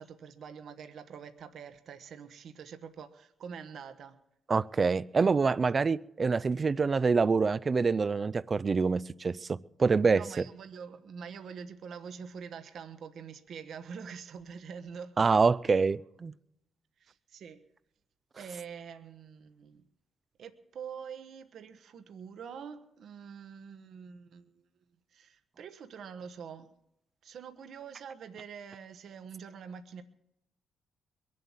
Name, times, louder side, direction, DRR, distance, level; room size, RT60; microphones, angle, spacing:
voice 1, 0.0-4.2 10.1-15.3 17.0-17.6 18.4-19.8 20.4-24.7 25.1-26.7 27.2-30.0, right 6 dB, 65° right, 1.0 m, -45 dB
voice 2, 4.5-10.2 15.2-16.3, right 4 dB, 35° right, 0.5 m, -26 dB
22.0 x 7.6 x 7.2 m
cardioid pair, 90°, 0 cm